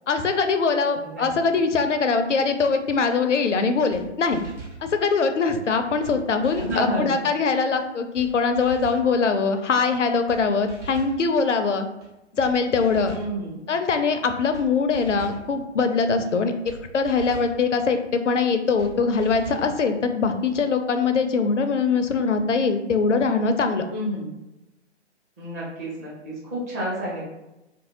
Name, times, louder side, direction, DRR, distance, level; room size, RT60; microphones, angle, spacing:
voice 1, 0.1-4.5 4.8-11.9 12.4-13.2 13.7-23.8, left 4 dB, 80° left, 7 dB, 0.5 m, -22 dB
voice 2, 1.0-1.5 6.6-7.2 13.1-13.6 23.9-24.3 25.4-27.3, equal, 15° right, -7 dB, 0.5 m, -30 dB
sound 1, 3.5-3.6 3.9-4.0 4.3-4.8 5.6-5.7 6.0-6.2 6.4-6.9 7.8-7.9 8.1-8.3 8.5-9.0 9.9-10.0 10.3-10.4 10.7-11.2 12.0-12.1 12.4-12.5 12.8-13.3 14.1-14.2 14.5-14.7 14.9-15.4 16.3-16.4 16.6-16.8 17.0-17.5 18.4-18.5 18.8-18.9 19.2-19.7, right 4 dB, 80° right, 1.2 m, -40 dB
2.8 x 2.6 x 2.7 m, 0.95 s
figure-of-eight pair, 130°, 36 cm